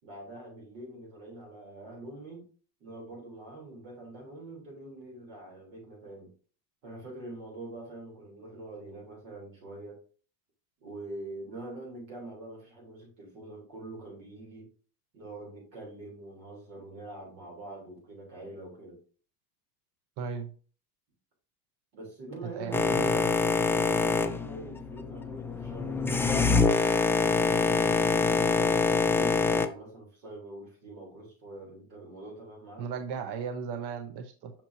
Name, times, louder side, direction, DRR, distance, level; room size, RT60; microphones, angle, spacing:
voice 1, 0.0-2.5 2.8-6.3 6.8-10.0 10.8-14.7 15.1-19.0 21.9-23.0 23.8-28.8 29.1-32.9, right 2 dB, 85° right, -1 dB, 3.3 m, -44 dB
voice 2, 20.2-20.5 22.6-23.4 32.8-34.5, right 6 dB, 55° right, 9 dB, 0.7 m, -36 dB
Boat Water vehicle, 22.7-29.7, left 4 dB, 5° left, 0.3 m, -25 dB
5.9 x 5.9 x 2.7 m, 0.40 s
hypercardioid pair, 75°, 49 cm